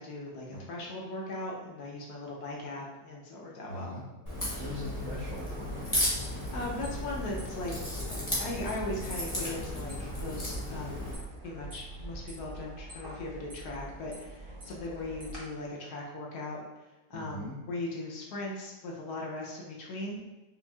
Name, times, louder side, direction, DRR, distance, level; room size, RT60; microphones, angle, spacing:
voice 1, 0.0-3.9 6.5-7.7 8.1-11.0 11.4-16.6 17.1-20.2, left 2 dB, 70° left, -2 dB, 1.1 m, -39 dB
voice 2, 3.7-4.0 4.4-6.3 17.1-17.6, left 1 dB, 60° right, -4 dB, 1.1 m, -41 dB
Crack, 4.3-11.2, left 1 dB, 15° left, 0.6 m, -35 dB
sound 1, 5.3-15.4, right 2 dB, 40° right, 0.9 m, -46 dB
5.2 x 2.5 x 2.3 m, 1.2 s
omnidirectional pair, 1.9 m